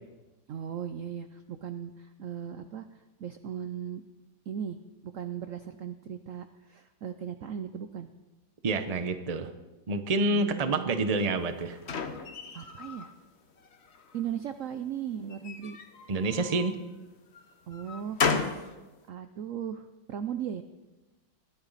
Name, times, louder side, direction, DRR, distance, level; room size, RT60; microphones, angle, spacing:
voice 1, 0.5-2.9 3.2-4.0 4.5-4.8 5.0-8.1 10.3-11.0 12.5-13.1 14.1-15.8 17.7-18.8 19.1-20.6, right 8 dB, 75° right, 9 dB, 0.7 m, -37 dB
voice 2, 8.6-9.5 9.9-11.8 16.1-16.7, right 2 dB, 35° right, 9 dB, 0.6 m, -28 dB
sound 1, 11.2-13.1 13.6-14.3 15.3-16.8 17.3-18.7, left 5 dB, 40° left, 1.1 m, -34 dB
20.5 x 13.5 x 4.1 m, 1.1 s
omnidirectional pair, 2.1 m